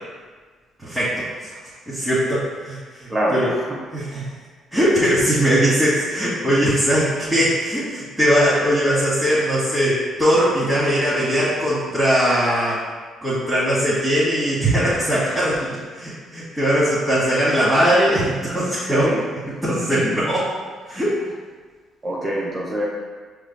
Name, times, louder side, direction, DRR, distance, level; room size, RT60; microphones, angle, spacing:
voice 1, 0.8-1.6 1.9-3.5 3.9-4.2 4.7-12.8 13.2-15.6 15.9-19.1 19.6-20.4 20.9-21.2, equal, 15° right, -11 dB, 1.4 m, -20 dB
voice 2, 3.1-3.6 18.9-19.2 20.1-20.2 22.0-22.8, equal, 30° right, -5 dB, 0.8 m, -24 dB
5.1 x 3.3 x 2.2 m, 1.4 s
supercardioid pair, 60°, 0 cm